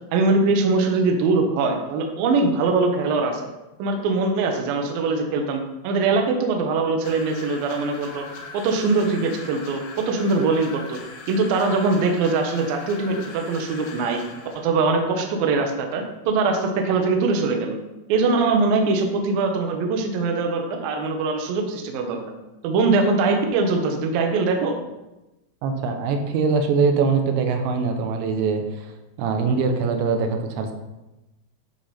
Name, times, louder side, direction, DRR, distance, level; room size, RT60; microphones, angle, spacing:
voice 1, 0.1-3.4 3.8-8.3 8.5-11.0 11.3-14.2 14.6-17.8 18.1-22.2 22.6-24.8, right 3 dB, 70° right, 3 dB, 2.4 m, -22 dB
sound 1, 7.0-14.7, left 3 dB, 85° left, 3.4 m, -40 dB
voice 2, 25.6-28.9 29.2-30.7, right 5 dB, 85° right, 5 dB, 3.2 m, -22 dB
10.5 x 5.9 x 4.3 m, 1.0 s
omnidirectional pair, 5.1 m